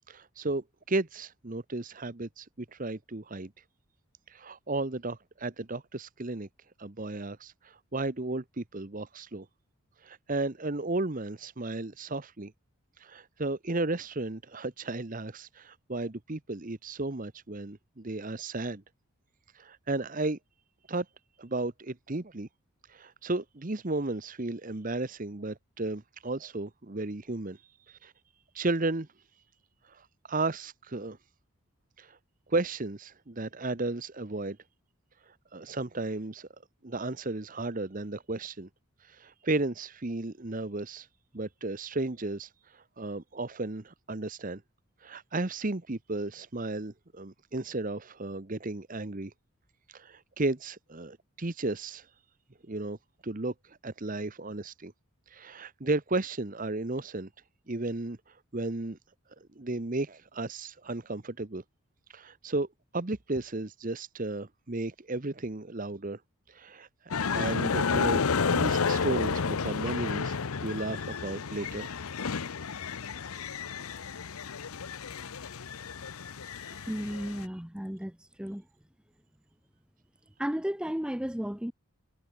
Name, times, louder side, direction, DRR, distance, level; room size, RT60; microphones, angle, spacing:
voice 1, 0.1-3.5 4.3-6.5 6.8-9.5 10.0-12.5 13.0-18.8 19.5-20.4 20.9-21.1 21.4-22.5 22.9-27.6 27.9-28.1 28.5-29.1 29.8-31.2 32.0-32.2 32.5-34.6 35.3-36.5 36.8-38.7 39.0-41.1 41.3-44.6 45.0-49.3 49.9-52.1 52.7-53.0 53.2-54.9 55.3-57.3 57.7-59.0 59.6-61.6 62.1-62.7 62.9-66.2 66.5-66.9 67.3-70.4 70.6-71.9 76.6-76.8, right 2 dB, 40° right, 1.0 m, -34 dB
sound 1, 67.1-77.5, left 5 dB, 80° left, 0.8 m, -31 dB
voice 2, 76.9-78.7 80.4-81.7, equal, 5° right, 0.6 m, -34 dB
head